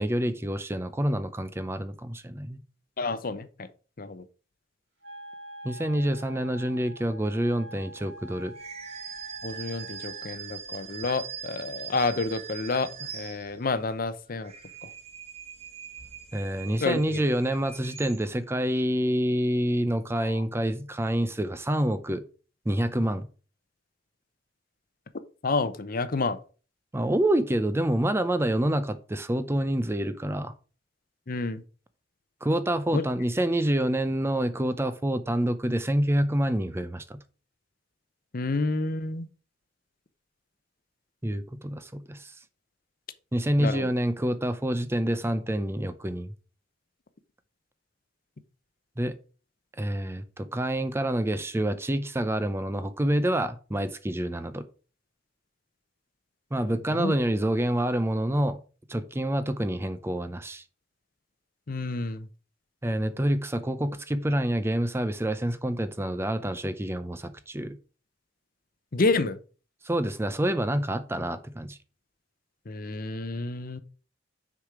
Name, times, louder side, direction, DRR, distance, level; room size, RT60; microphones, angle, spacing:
voice 1, 0.0-2.6 5.6-8.6 16.3-22.2 22.7-23.3 26.9-30.5 32.4-37.2 41.2-42.3 43.3-46.3 49.0-49.1 49.8-54.6 56.5-58.6 58.9-60.6 62.8-67.8 69.8-71.8, right 1 dB, 15° right, 0.5 m, -27 dB
voice 2, 3.0-3.7 4.0-4.2 9.4-14.5 14.8-14.9 16.8-17.2 20.2-20.4 25.4-26.4 31.3-31.6 32.9-33.0 38.3-39.3 43.6-43.9 56.9-57.1 61.7-62.3 68.9-69.4 72.7-73.8, left 3 dB, 50° left, 0.7 m, -29 dB
Wind instrument woodwind instrument, 5.0-10.4, right 1 dB, 70° right, 2.7 m, -45 dB
sound 1, 8.5-13.8 14.3-18.5, right 8 dB, 35° right, 0.9 m, -42 dB
6.6 x 5.0 x 4.8 m
head